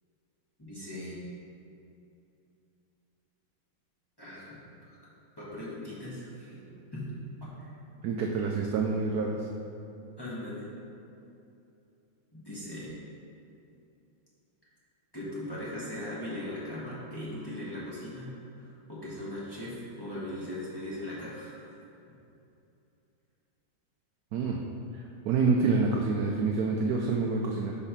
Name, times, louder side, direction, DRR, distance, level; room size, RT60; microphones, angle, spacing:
voice 1, 0.6-1.2 4.2-5.0 5.4-7.2 7.5-7.7 10.2-10.7 12.3-12.9 15.1-21.7, left 1 dB, 15° left, -9 dB, 1.0 m, -39 dB
voice 2, 8.0-9.4 24.3-24.6 25.3-27.8, right 4 dB, 90° right, 0 dB, 0.8 m, -27 dB
4.8 x 4.4 x 5.7 m, 2.7 s
omnidirectional pair, 2.2 m